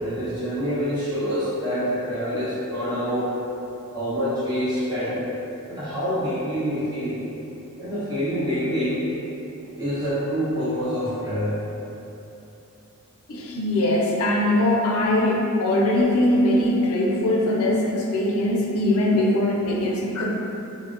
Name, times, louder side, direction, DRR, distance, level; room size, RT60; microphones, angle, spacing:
voice 1, 0.0-3.3 3.9-5.2 5.7-7.2 7.8-9.0 9.8-11.6, equal, 20° right, -12 dB, 0.8 m, -26 dB
voice 2, 13.3-20.3, left 1 dB, 75° left, -2 dB, 0.4 m, -21 dB
3.4 x 2.0 x 2.5 m, 3.0 s
head